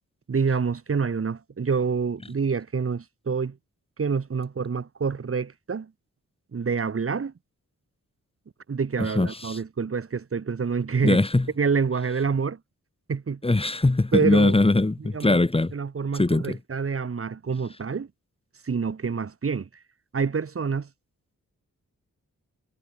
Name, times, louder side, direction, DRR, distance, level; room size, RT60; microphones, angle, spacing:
voice 1, 0.3-3.6 4.0-5.9 6.5-7.3 8.7-11.2 11.6-12.6 13.1-13.4 14.1-14.6 15.0-15.4 15.7-18.1 18.6-19.7 20.1-20.9, right 5 dB, 40° right, 1.1 m, -27 dB
voice 2, 9.2-9.6 11.0-11.5 13.4-15.7 16.1-16.6, left 2 dB, 15° left, 1.0 m, -21 dB
cardioid pair, 40°, 35 cm